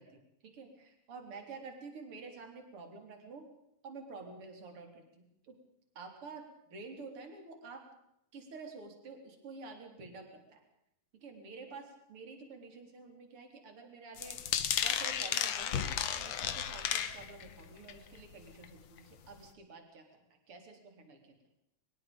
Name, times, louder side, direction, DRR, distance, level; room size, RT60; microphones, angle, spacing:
voice 1, 0.0-3.5 3.8-5.5 5.9-7.9 8.3-10.6 11.2-20.0 20.5-21.4, right 4 dB, 40° right, 4 dB, 4.5 m, -49 dB
sound 1, 14.2-17.6 17.9-18.2 18.6-18.7 19.0-19.1, left 9 dB, 60° left, 2.2 m, -33 dB
24.5 x 22.5 x 5.3 m, 0.79 s
omnidirectional pair, 3.8 m